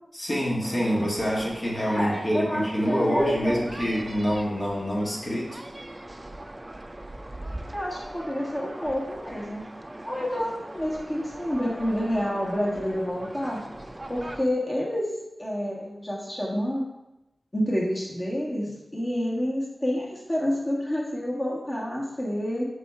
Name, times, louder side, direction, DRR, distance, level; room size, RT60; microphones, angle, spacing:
voice 1, 0.1-5.6, equal, 45° left, -4 dB, 1.6 m, -26 dB
sound 1, 0.6-14.5, right 1 dB, 25° right, 0.5 m, -41 dB
voice 2, 2.0-3.6 7.7-9.6 10.0-13.6 14.1-15.1 15.4-16.8 17.5-22.6, equal, 30° left, -5 dB, 1.5 m, -28 dB
4.9 x 4.0 x 5.7 m, 0.93 s
cardioid pair, 50°, 0 cm